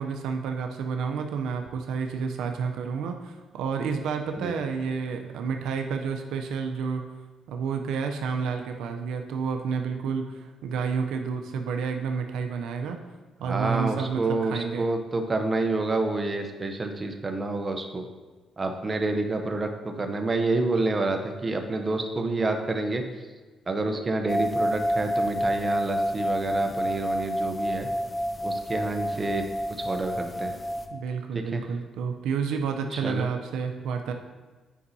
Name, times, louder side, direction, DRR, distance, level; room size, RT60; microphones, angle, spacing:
voice 1, 0.0-7.0 7.5-13.0 13.4-14.8 30.9-34.1, right 6 dB, 85° right, 5 dB, 0.5 m, -30 dB
voice 2, 13.4-18.0 18.6-23.0 23.7-27.9 28.4-29.5 29.8-30.6 31.3-31.6 33.0-33.3, right 2 dB, 30° right, 5 dB, 0.7 m, -28 dB
sound 1, 24.3-30.9, equal, 25° left, 0.6 m, -28 dB
8.4 x 5.5 x 2.7 m, 1.3 s
cardioid pair, 90°, 0 cm